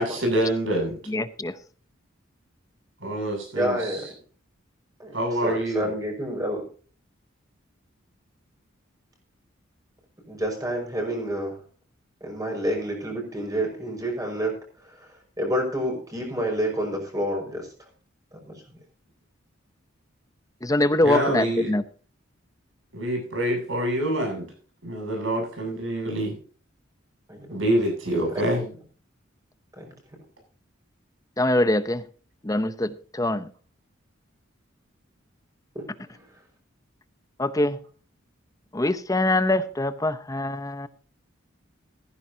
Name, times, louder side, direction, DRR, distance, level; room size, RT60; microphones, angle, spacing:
voice 1, 0.0-1.0 3.0-3.8 5.1-5.9 21.0-21.7 22.9-24.5 24.8-26.3 27.5-28.6, right 1 dB, 65° right, 2 dB, 7.6 m, -26 dB
voice 2, 1.1-1.6 20.6-21.8 31.4-32.0 32.4-33.5 37.4-37.8 38.7-40.9, left 1 dB, 15° left, 13 dB, 0.7 m, -23 dB
voice 3, 3.5-4.0 5.0-5.1 5.4-6.6 10.3-11.6 12.2-14.6 14.9-15.1 15.4-17.7 18.3-18.8 21.3-21.5 27.3-27.6 28.3-28.7 29.8-29.9 35.7-35.8 36.1-36.2, equal, 20° right, 1 dB, 5.6 m, -29 dB
15.5 x 15.0 x 2.8 m, 0.40 s
head